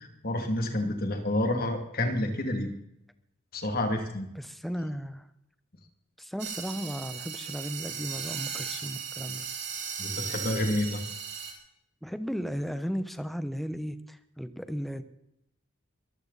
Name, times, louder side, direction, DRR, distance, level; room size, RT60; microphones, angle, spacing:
voice 1, 0.0-2.7 3.5-4.3 10.0-11.0, left 1 dB, 45° left, 5 dB, 2.5 m, -29 dB
voice 2, 4.3-5.3 6.2-9.5 12.0-15.0, equal, ahead, 10 dB, 0.9 m, -35 dB
sound 1, 6.4-11.5, right 7 dB, 55° right, 4.1 m, -37 dB
23.0 x 14.5 x 4.1 m, 0.83 s
head